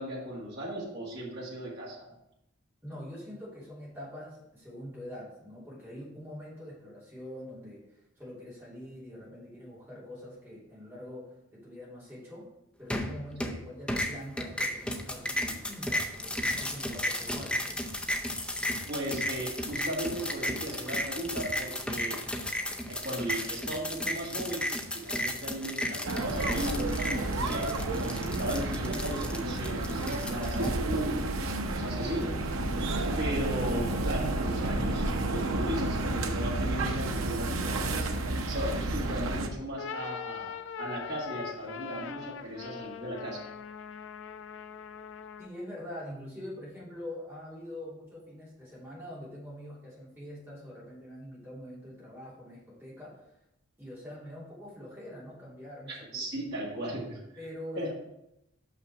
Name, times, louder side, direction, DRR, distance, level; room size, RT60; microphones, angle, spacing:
voice 1, 0.0-2.1 13.5-13.6 18.9-22.2 22.9-24.6 24.9-26.9 27.3-32.3 33.2-38.1 38.5-43.5 56.1-57.2 57.8-57.9, right 1 dB, 55° right, -5 dB, 1.8 m, -36 dB
voice 2, 2.8-12.5 12.8-17.6 45.4-53.3 53.8-56.2 57.4-57.9, left 1 dB, 10° right, -8 dB, 3.0 m, -44 dB
sound 1, 12.9-13.6 13.9-30.7, left 1 dB, 5° left, 0.5 m, -34 dB
sound 2, 26.0-39.5, right 2 dB, 85° right, 0.7 m, -31 dB
sound 3, 39.6-45.6, left 8 dB, 65° left, 0.4 m, -42 dB
6.0 x 5.8 x 4.6 m, 0.85 s
head